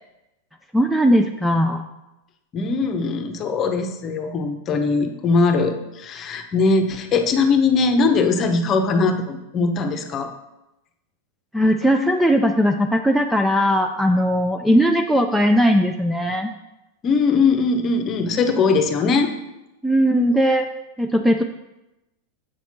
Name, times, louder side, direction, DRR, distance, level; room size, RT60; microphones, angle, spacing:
voice 1, 0.7-1.8 11.5-16.5 19.8-20.7 21.0-21.4, equal, ahead, 5 dB, 0.4 m, -18 dB
voice 2, 2.5-10.3 14.7-14.8 17.0-19.3, left 4 dB, 30° left, 7 dB, 0.9 m, -20 dB
7.8 x 5.8 x 4.3 m, 0.95 s
figure-of-eight pair, 90°, 0 cm